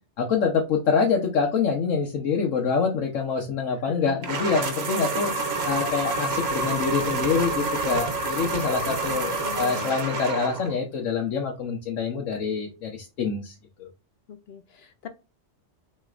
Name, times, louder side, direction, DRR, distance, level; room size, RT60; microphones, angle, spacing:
voice 1, 0.2-5.3 5.6-13.9, left 5 dB, 85° left, 1.2 m, -26 dB
voice 2, 3.8-4.3 5.3-5.5 8.8-9.9 14.3-15.1, left 7 dB, 65° left, 0.7 m, -41 dB
sound 1, 4.2-10.8, right 3 dB, 60° right, 1.2 m, -28 dB
6.2 x 3.3 x 2.4 m
omnidirectional pair, 1.3 m